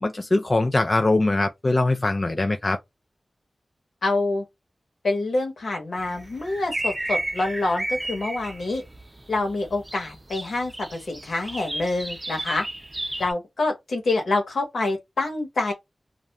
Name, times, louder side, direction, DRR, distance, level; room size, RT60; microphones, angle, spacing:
voice 1, 0.0-2.8, left 2 dB, 40° left, 0.4 m, -22 dB
voice 2, 4.0-4.4 5.0-8.8 9.3-12.6 13.2-15.7, left 2 dB, 85° left, 1.1 m, -26 dB
sound 1, 6.0-13.3, right 1 dB, 25° right, 0.5 m, -33 dB
2.3 x 2.3 x 2.9 m
cardioid pair, 45°, 0 cm